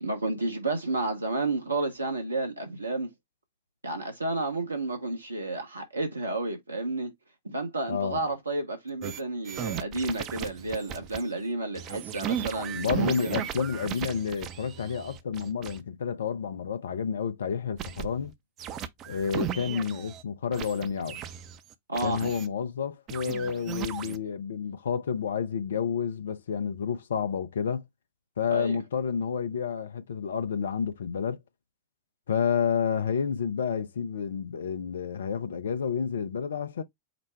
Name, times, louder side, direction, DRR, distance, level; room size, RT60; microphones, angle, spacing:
voice 1, 0.0-3.1 3.8-7.1 7.4-13.3 21.9-22.3 28.5-28.8, right 2 dB, 80° right, 0.9 m, -31 dB
voice 2, 7.9-8.2 12.7-18.3 19.1-21.2 22.0-27.8 28.4-31.4 32.3-36.8, left 7 dB, 65° left, 0.6 m, -30 dB
sound 1, 9.0-9.2 9.5-11.2 11.8-15.8 17.8-18.3 18.6-20.2 20.5-22.5 23.1-24.2, right 10 dB, 35° right, 0.5 m, -36 dB
5.0 x 2.1 x 4.4 m
figure-of-eight pair, 90°, 0 cm